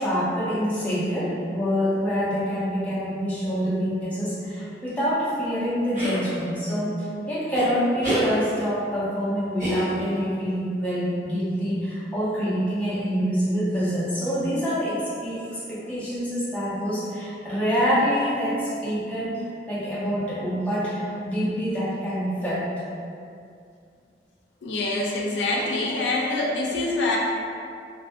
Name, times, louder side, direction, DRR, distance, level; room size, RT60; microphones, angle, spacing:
voice 1, 0.0-22.7, equal, 5° left, -11 dB, 0.5 m, -26 dB
sound 1, 5.9-6.2 7.5-7.7 8.0-8.3 9.6-10.2, equal, 45° right, 0.8 m, -27 dB
voice 2, 24.6-27.2, left 2 dB, 90° left, -2 dB, 0.4 m, -25 dB
2.5 x 2.5 x 2.3 m, 2.4 s
head